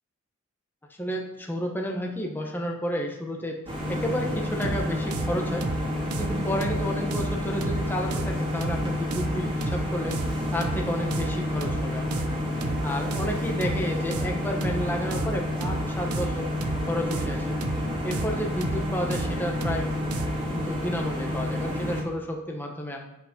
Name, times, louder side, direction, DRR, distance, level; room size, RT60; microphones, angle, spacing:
voice 1, 1.0-3.6 3.9-5.7 6.2-10.2 10.5-12.3 12.8-16.5 16.9-17.6 18.0-19.9 20.5-23.0, equal, 10° left, 1 dB, 1.1 m, -31 dB
sound 1, 3.7-22.0, left 1 dB, 20° right, 2.5 m, -30 dB
sound 2, 4.6-20.5, right 3 dB, 90° right, 0.6 m, -33 dB
9.6 x 5.3 x 5.2 m, 0.89 s
head